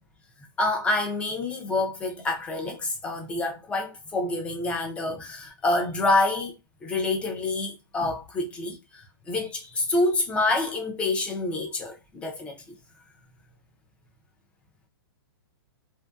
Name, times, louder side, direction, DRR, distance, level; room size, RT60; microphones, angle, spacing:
voice 1, 0.6-6.5 6.8-12.6, left 2 dB, 10° left, 0.4 m, -27 dB
2.6 x 2.6 x 2.2 m
hypercardioid pair, 160°, 13 cm